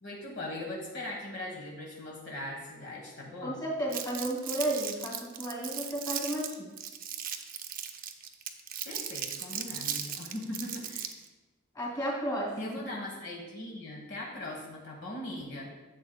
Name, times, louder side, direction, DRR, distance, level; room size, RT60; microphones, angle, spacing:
voice 1, 0.0-3.6 8.8-11.1 12.6-15.7, left 1 dB, 60° left, -2 dB, 1.3 m, -40 dB
voice 2, 3.4-6.7 11.7-12.7, right 1 dB, 20° left, -2 dB, 2.2 m, -33 dB
Crumpling crinkling, 3.9-11.3, right 9 dB, 45° right, 0.6 m, -37 dB
11.0 x 7.7 x 2.2 m, 1.2 s
head